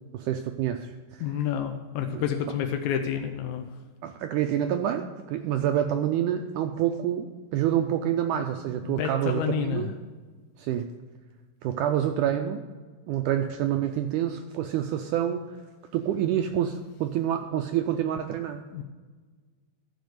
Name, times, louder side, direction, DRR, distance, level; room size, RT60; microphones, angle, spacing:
voice 1, 0.1-1.3 2.1-2.3 4.0-9.4 9.7-9.9 10.6-10.9 11.6-12.6 13.1-15.6 15.9-18.6, right 10 dB, 80° right, 6 dB, 1.8 m, -27 dB
voice 2, 1.2-3.7 8.8-9.9 18.7-18.8, left 8 dB, 80° left, 4 dB, 1.7 m, -29 dB
12.0 x 5.0 x 7.8 m, 1.4 s
omnidirectional pair, 4.1 m